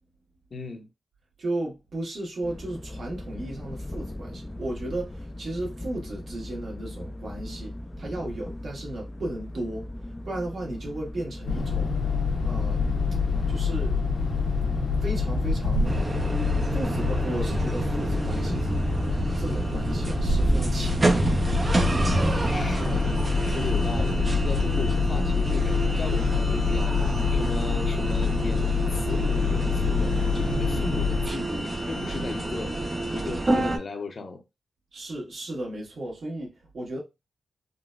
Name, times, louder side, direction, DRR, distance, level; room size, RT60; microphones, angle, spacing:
voice 1, 0.5-0.9 22.4-27.0 27.3-32.7 33.1-34.4, left 3 dB, 55° left, 0.7 m, -36 dB
voice 2, 1.4-9.9 10.2-12.0 12.4-12.9 13.5-14.0 15.0-16.0 16.7-18.7 19.3-21.5 34.9-37.0, right 1 dB, 65° right, 1.3 m, -35 dB
sound 1, 2.4-21.3, left 1 dB, 20° left, 0.4 m, -39 dB
sound 2, 11.5-31.3, left 4 dB, 80° left, 1.0 m, -26 dB
sound 3, 15.8-33.8, right 2 dB, 30° right, 0.5 m, -28 dB
3.8 x 2.1 x 2.4 m
cardioid pair, 75°, 0 cm